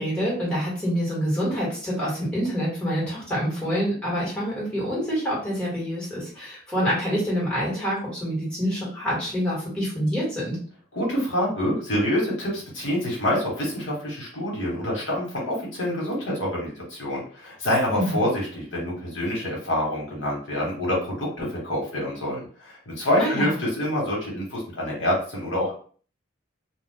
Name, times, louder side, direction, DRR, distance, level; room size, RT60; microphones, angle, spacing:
voice 1, 0.0-10.6 17.9-18.2 23.2-23.5, equal, 5° left, -6 dB, 1.3 m, -26 dB
voice 2, 10.9-25.7, left 1 dB, 70° left, -3 dB, 1.3 m, -26 dB
2.4 x 2.3 x 3.6 m, 0.43 s
head